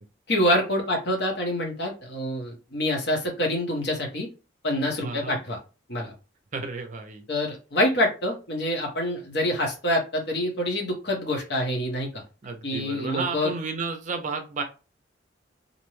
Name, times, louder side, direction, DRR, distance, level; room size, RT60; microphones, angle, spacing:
voice 1, 0.3-4.3 4.6-5.6 5.9-6.1 7.3-12.2 12.6-13.5, left 1 dB, 55° left, 1 dB, 0.9 m, -26 dB
voice 2, 5.0-5.4 6.5-7.2 12.4-14.6, right 4 dB, 40° right, 6 dB, 0.5 m, -32 dB
2.6 x 2.2 x 3.0 m, 0.31 s
head